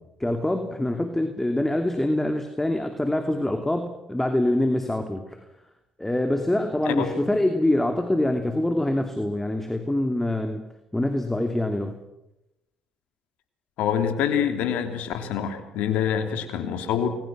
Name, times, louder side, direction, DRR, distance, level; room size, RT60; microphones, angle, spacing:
voice 1, 0.2-5.4 6.0-10.6 10.9-12.0, left 1 dB, 10° left, 6 dB, 2.8 m, -25 dB
voice 2, 13.8-17.2, left 8 dB, 70° left, 8 dB, 3.1 m, -26 dB
30.0 x 22.0 x 6.3 m, 0.90 s
hypercardioid pair, 50°, 2 cm